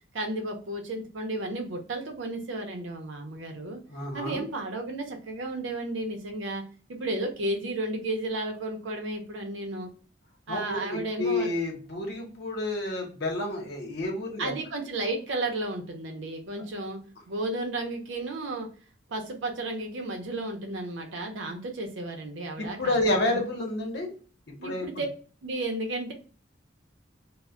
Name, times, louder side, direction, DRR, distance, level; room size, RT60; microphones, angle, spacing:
voice 1, 0.1-3.8 4.1-6.6 6.9-9.9 10.5-11.5 14.4-17.0 17.3-18.7 19.1-22.9 23.3-23.4 24.6-25.1 25.4-26.1, right 2 dB, 75° right, 3 dB, 0.6 m, -33 dB
voice 2, 3.9-4.4 10.5-14.5 22.6-24.1 24.6-24.9, left 2 dB, 60° left, 1 dB, 0.8 m, -29 dB
2.1 x 2.1 x 3.6 m, 0.39 s
head